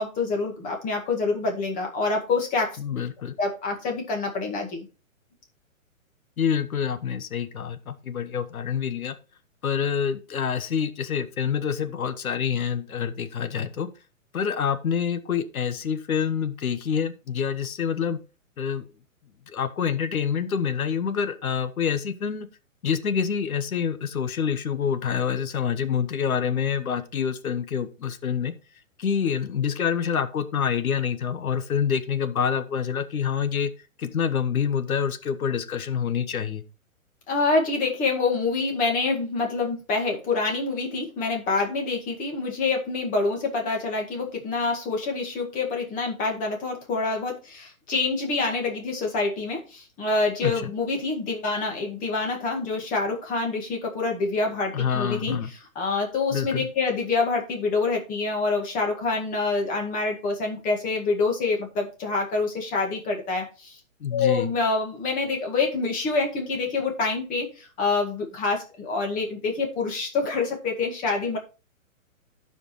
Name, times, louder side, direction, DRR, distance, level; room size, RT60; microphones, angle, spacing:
voice 1, 0.0-2.8 3.4-4.9 37.3-63.8 64.1-71.4, left 3 dB, 20° left, 2 dB, 1.9 m, -26 dB
voice 2, 2.8-3.3 6.4-9.1 9.6-13.9 14.3-18.2 18.6-18.9 19.5-22.5 22.8-28.5 29.0-33.7 34.0-36.6 50.4-50.7 54.7-55.5 56.3-56.7 64.0-64.5, left 7 dB, 85° left, 11 dB, 1.3 m, -27 dB
15.0 x 5.0 x 3.1 m, 0.32 s
hypercardioid pair, 150°, 42 cm